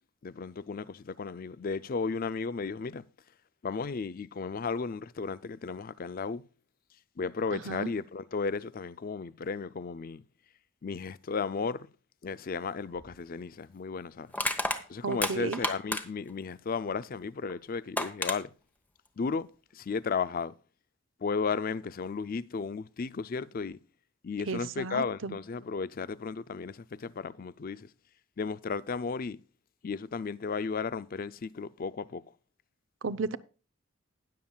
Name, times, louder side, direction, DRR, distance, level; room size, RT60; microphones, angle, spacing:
voice 1, 0.2-3.0 3.6-6.5 7.2-10.2 10.8-11.9 12.2-14.3 14.9-18.5 19.2-19.5 19.7-20.5 21.2-23.8 24.2-27.9 28.4-29.4 29.8-32.2, left 5 dB, 45° left, 0.4 m, -34 dB
voice 2, 7.5-7.9 15.0-15.6 24.5-25.4 33.0-33.4, right 4 dB, 70° right, 0.7 m, -34 dB
Crushing, 13.0-13.1 14.3-16.3 17.5-17.6 18.0-18.4, left 1 dB, 10° left, 1.1 m, -31 dB
20.0 x 7.3 x 2.3 m
head